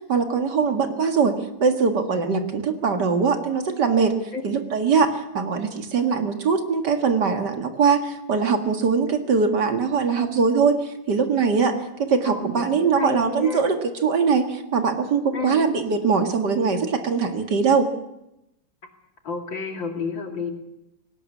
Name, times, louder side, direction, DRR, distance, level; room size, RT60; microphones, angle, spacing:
voice 1, 0.1-1.3 1.6-4.1 4.4-10.8 11.1-11.7 12.0-13.8 14.0-17.9, right 5 dB, 60° right, 6 dB, 2.4 m, -21 dB
voice 2, 12.2-13.7 15.3-15.7 19.2-20.5, left 4 dB, 75° left, 4 dB, 3.3 m, -31 dB
19.0 x 18.0 x 8.4 m, 0.87 s
omnidirectional pair, 2.1 m